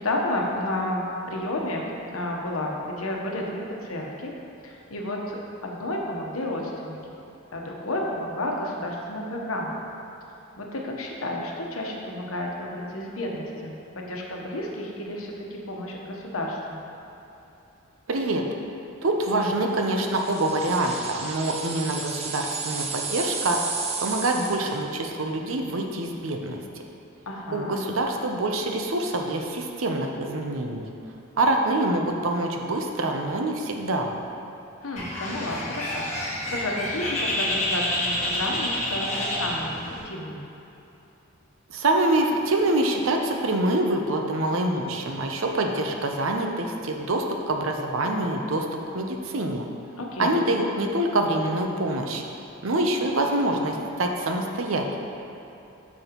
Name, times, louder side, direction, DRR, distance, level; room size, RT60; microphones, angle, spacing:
voice 1, 0.0-4.3 4.6-7.2 7.5-9.8 10.6-16.8 27.3-27.7 34.8-40.5 50.0-50.4, left 1 dB, 85° left, -1 dB, 1.0 m, -31 dB
voice 2, 18.1-18.4 19.0-23.6 24.0-26.6 27.5-30.8 31.4-34.1 41.7-49.6 50.2-52.2 52.6-55.0, right 2 dB, 75° right, 2 dB, 0.7 m, -25 dB
sound 1, 20.0-24.8, right 4 dB, 30° right, 0.6 m, -33 dB
Bird, 35.0-40.0, left 1 dB, 30° left, 1.5 m, -28 dB
8.9 x 6.1 x 3.0 m, 2.9 s
head